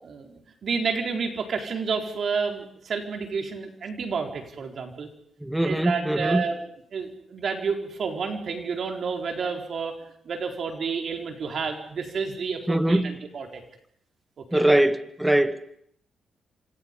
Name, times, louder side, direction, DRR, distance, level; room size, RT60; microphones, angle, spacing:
voice 1, 0.0-5.1 5.6-6.6 6.9-13.6 14.4-14.6, right 5 dB, 60° right, 4.5 m, -30 dB
voice 2, 5.4-6.4 12.7-13.1 14.5-15.6, right 1 dB, 10° right, 1.9 m, -22 dB
30.0 x 26.0 x 5.5 m
supercardioid pair, 65°, 0 cm